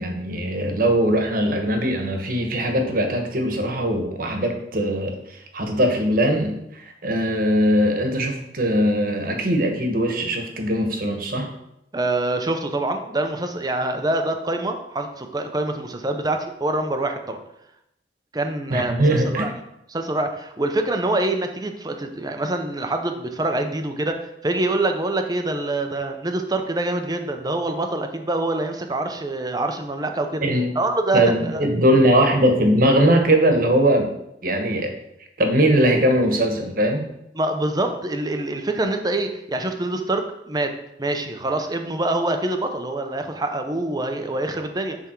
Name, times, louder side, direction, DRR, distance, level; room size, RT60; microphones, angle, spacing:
voice 1, 0.0-11.5 18.7-19.5 30.4-30.7 31.1-34.1 34.4-34.9 35.4-37.0, right 1 dB, 55° right, 4 dB, 1.3 m, -20 dB
voice 2, 11.9-17.4 18.3-19.5 19.9-30.4 30.8-31.6 37.4-45.0, right 2 dB, 20° right, 6 dB, 0.7 m, -25 dB
10.0 x 3.6 x 4.5 m, 0.82 s
head